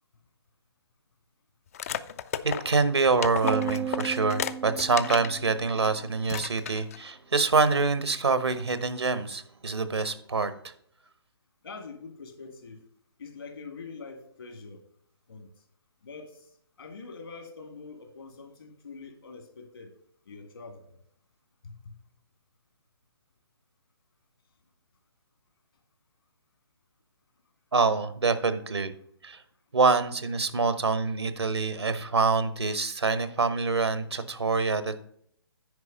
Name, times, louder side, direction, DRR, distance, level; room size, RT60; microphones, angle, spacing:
sound 1, 1.7-5.3 5.8-5.9 6.2-7.0, left 9 dB, 35° left, 0.4 m, -34 dB
voice 1, 2.4-10.7 27.7-28.9 29.2-29.4 29.7-35.0, right 4 dB, 80° right, 13 dB, 1.1 m, -26 dB
sound 2, 3.4-5.9, right 9 dB, 20° right, 0.5 m, -35 dB
voice 2, 11.6-12.8 13.2-14.8 15.3-15.5 16.0-20.0 20.3-21.0 21.6-22.0, left 4 dB, 65° left, 6 dB, 2.1 m, -44 dB
9.6 x 4.9 x 5.1 m, 0.66 s
figure-of-eight pair, 140°, 14 cm